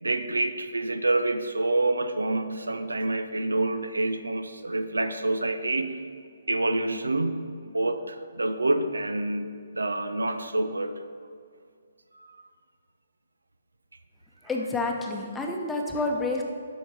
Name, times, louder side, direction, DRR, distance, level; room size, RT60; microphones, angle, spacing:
voice 1, 0.0-6.0 6.5-9.5 9.7-11.0 12.2-12.3, right 2 dB, 75° right, 10 dB, 0.5 m, -27 dB
voice 2, 14.4-16.4, left 2 dB, 10° left, 1 dB, 0.9 m, -29 dB
8.0 x 6.4 x 6.1 m, 2.2 s
figure-of-eight pair, 135°, 0 cm